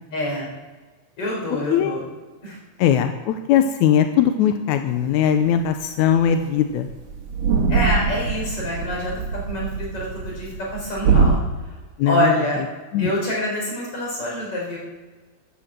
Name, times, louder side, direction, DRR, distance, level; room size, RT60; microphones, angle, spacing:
voice 1, 0.1-0.5 1.2-2.0 2.4-2.6 7.7-9.1 9.5-11.4 12.0-12.6 13.0-14.8, equal, 40° left, -2 dB, 5.5 m, -26 dB
voice 2, 2.8-6.9 12.0-12.3 12.9-13.1, left 9 dB, 75° left, 7 dB, 1.9 m, -19 dB
sound 1, 5.7-5.8 6.1-6.3 6.6-6.7 6.9-11.4, right 5 dB, 55° right, 2.6 m, -22 dB
14.5 x 9.3 x 7.5 m, 1.3 s
omnidirectional pair, 3.9 m